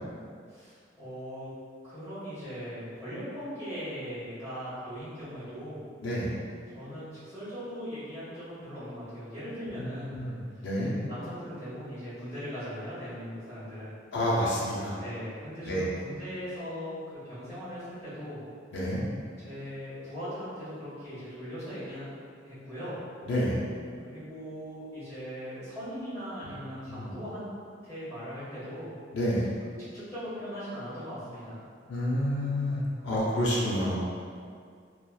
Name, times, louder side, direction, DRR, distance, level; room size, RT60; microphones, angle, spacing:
voice 1, 0.5-1.5 1.8-5.8 6.7-10.1 10.9-13.9 15.0-18.4 19.4-22.0 22.4-23.0 24.0-27.5 27.8-28.8 29.3-29.4 29.9-31.6, equal, 15° left, -14 dB, 1.4 m, -39 dB
voice 2, 6.0-6.3 9.8-10.3 10.6-10.9 14.1-15.0 15.6-15.9 18.7-19.0 23.3-23.6 26.9-27.1 29.1-29.5 31.9-34.0, equal, 75° left, -6 dB, 0.5 m, -29 dB
2.8 x 2.3 x 2.3 m, 2.1 s
head